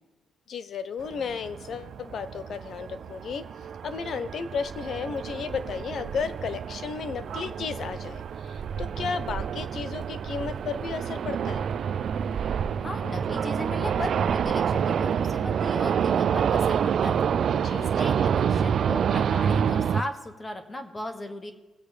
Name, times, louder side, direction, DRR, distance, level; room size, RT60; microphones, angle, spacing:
voice 1, 0.5-3.5 3.8-11.6 17.5-18.3, left 6 dB, 60° left, 13 dB, 0.8 m, -34 dB
sound 1, 1.0-20.0, right 7 dB, 60° right, 0.4 m, -28 dB
voice 2, 12.8-17.3 17.8-21.5, left 1 dB, 25° left, 6 dB, 1.5 m, -36 dB
20.0 x 8.2 x 3.3 m, 1.2 s
cardioid pair, 90°, 0 cm